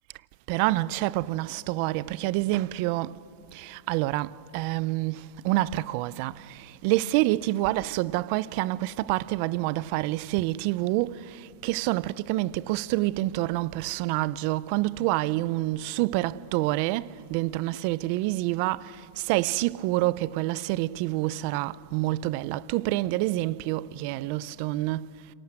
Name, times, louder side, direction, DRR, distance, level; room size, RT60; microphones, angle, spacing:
voice 1, 0.5-3.1 3.5-25.1, right 18 dB, 55° right, 0.7 m, -27 dB
28.0 x 26.0 x 7.8 m
hypercardioid pair, 115°, 0 cm